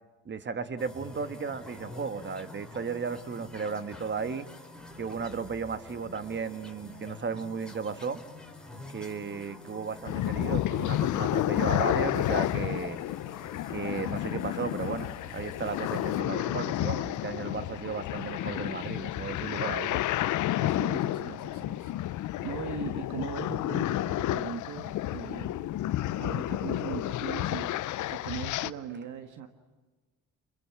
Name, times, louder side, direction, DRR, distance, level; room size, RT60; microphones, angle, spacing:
voice 1, 0.2-4.5 5.0-8.2 8.9-13.0 13.7-20.0, right 5 dB, 35° right, 11 dB, 1.7 m, -35 dB
sound 1, 0.8-16.2, left 2 dB, 5° left, 4.4 m, -47 dB
sound 2, 10.0-28.7, left 14 dB, 80° left, 0.7 m, -31 dB
voice 2, 20.6-21.9 22.2-25.7 26.2-27.7 28.1-29.5, right 8 dB, 75° right, 8 dB, 1.7 m, -39 dB
28.5 x 22.5 x 7.3 m, 1.3 s
cardioid pair, 90°, 30 cm